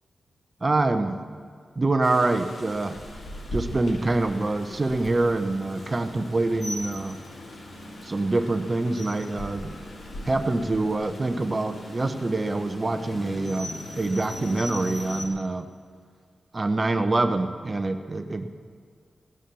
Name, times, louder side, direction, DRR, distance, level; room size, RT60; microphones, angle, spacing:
voice 1, 0.6-1.2 1.8-3.0 3.5-7.2 8.0-9.7 10.3-15.7 16.5-18.5, right 2 dB, 25° right, 8 dB, 0.9 m, -25 dB
Rain, 2.0-15.3, left 1 dB, 55° left, 2.6 m, -39 dB
17.5 x 11.0 x 6.9 m, 2.1 s
wide cardioid pair, 145°, 0 cm